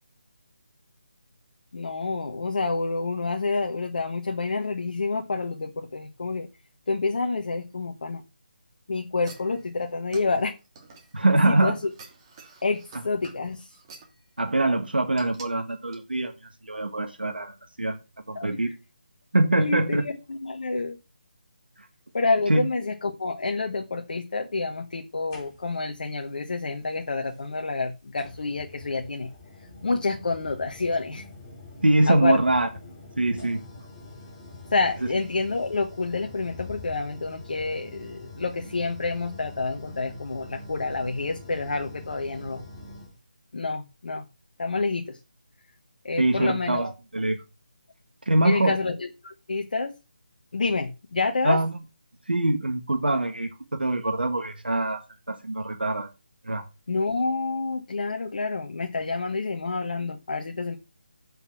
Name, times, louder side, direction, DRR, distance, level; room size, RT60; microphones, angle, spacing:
voice 1, 1.7-6.5 6.9-8.2 8.9-10.6 11.5-11.8 12.6-13.7 18.3-18.6 19.6-21.0 22.1-29.3 29.8-31.3 32.1-32.4 34.7-42.6 43.5-44.2 44.6-45.2 46.0-46.8 48.4-49.9 50.5-51.6 56.9-60.8, left 3 dB, 60° left, 1.3 m, -28 dB
sound 1, 9.2-11.5 11.9-14.2 15.2-15.5 15.9-16.0, right 4 dB, 25° right, 2.6 m, -48 dB
voice 2, 11.1-11.8 14.4-16.3 16.6-18.0 18.3-18.7 19.3-20.0 22.5-22.7 31.8-32.7 33.2-33.6 46.2-47.4 48.2-48.8 51.4-51.7 52.3-55.0 55.3-56.1 56.4-56.6, right 2 dB, 85° right, 1.5 m, -23 dB
sound 2, 25.3-25.9 27.3-27.4 28.2-43.2, left 2 dB, 15° left, 4.8 m, -44 dB
8.2 x 5.6 x 5.8 m
figure-of-eight pair, 160°, 5 cm